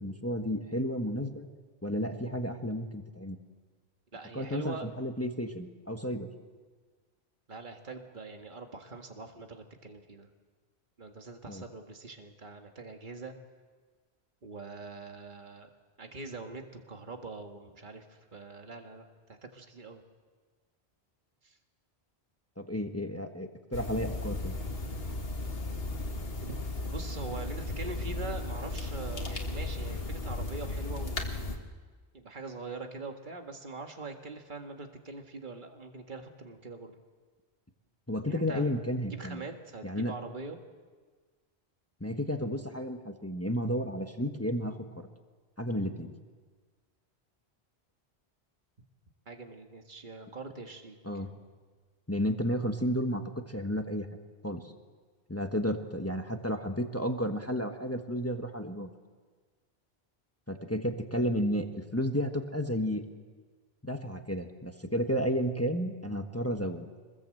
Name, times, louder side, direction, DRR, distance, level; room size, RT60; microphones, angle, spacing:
voice 1, 0.0-1.5 1.8-3.4 4.3-6.3 11.5-11.6 22.6-24.5 38.1-39.4 39.8-40.1 42.0-44.8 45.6-46.1 51.0-51.3 52.1-53.2 53.5-54.1 54.4-54.7 55.3-58.9 60.5-63.0 63.8-66.9, equal, 15° left, 5 dB, 1.3 m, -32 dB
voice 2, 4.1-4.9 7.5-10.3 11.0-13.3 14.4-15.7 16.0-20.0 21.4-21.6 26.4-26.5 26.9-31.7 32.1-36.9 38.3-38.8 39.1-40.6 49.3-51.0, right 3 dB, 50° right, 4 dB, 1.9 m, -43 dB
sound 1, 23.7-31.6, left 2 dB, 65° left, 2.0 m, -35 dB
26.5 x 21.0 x 7.8 m, 1.5 s
omnidirectional pair, 1.1 m